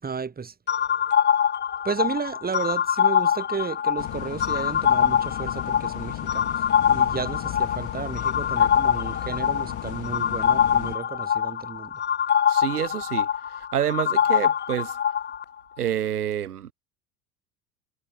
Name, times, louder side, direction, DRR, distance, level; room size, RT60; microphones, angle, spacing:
voice 1, 0.0-0.5 1.8-6.5 6.9-11.9, right 5 dB, 20° right, 6.5 m, -33 dB
sound 1, 0.7-15.4, left 8 dB, 20° left, 1.6 m, -24 dB
sound 2, 4.0-11.0, left 15 dB, 40° left, 4.6 m, -36 dB
voice 2, 12.5-13.3 13.7-15.0 15.8-16.7, right 10 dB, 75° right, 1.0 m, -27 dB
figure-of-eight pair, 75°, 45 cm